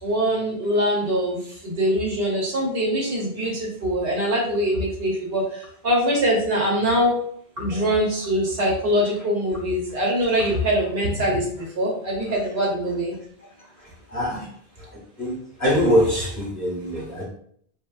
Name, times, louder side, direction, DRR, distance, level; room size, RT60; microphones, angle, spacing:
voice 1, 0.0-7.2 7.6-13.1, equal, 65° right, -2 dB, 0.9 m, -23 dB
voice 2, 13.6-14.5 14.8-17.2, equal, 15° left, -6 dB, 0.9 m, -24 dB
3.2 x 2.1 x 2.3 m, 0.63 s
omnidirectional pair, 1.1 m